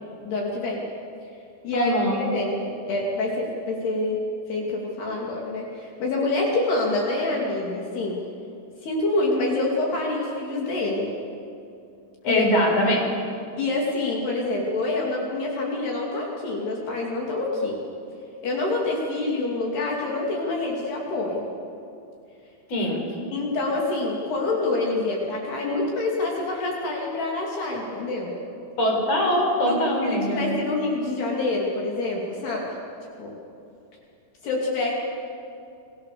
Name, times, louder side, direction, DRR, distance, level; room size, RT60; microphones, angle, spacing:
voice 1, 0.2-0.8 1.6-4.2 4.5-8.2 8.8-11.1 12.2-12.5 13.6-17.8 18.4-21.5 23.3-28.3 29.7-32.7 33.2-33.3 34.4-34.9, left 2 dB, 70° left, -2 dB, 4.8 m, -26 dB
voice 2, 1.7-2.3 12.3-13.1 22.7-23.1 28.8-30.5, equal, 40° left, 0 dB, 5.5 m, -22 dB
29.5 x 22.5 x 7.0 m, 2.7 s
omnidirectional pair, 4.9 m